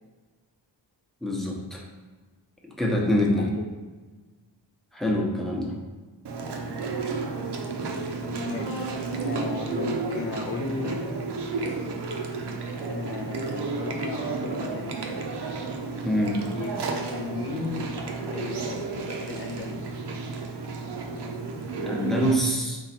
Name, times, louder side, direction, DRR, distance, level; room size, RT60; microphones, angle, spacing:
voice 1, 1.2-1.8 2.8-3.5 4.9-5.8 16.0-16.4 21.8-22.8, left 1 dB, ahead, -2 dB, 0.9 m, -25 dB
voice 2, 3.1-3.7 8.2-8.9 9.2-11.1 12.9-15.2 16.5-17.9 18.3-20.0, left 5 dB, 30° left, 1 dB, 0.4 m, -36 dB
Chewing mastication, 6.2-22.3, right 4 dB, 60° right, 0.7 m, -32 dB
4.0 x 3.0 x 4.3 m, 1.3 s
wide cardioid pair, 95°, 45 cm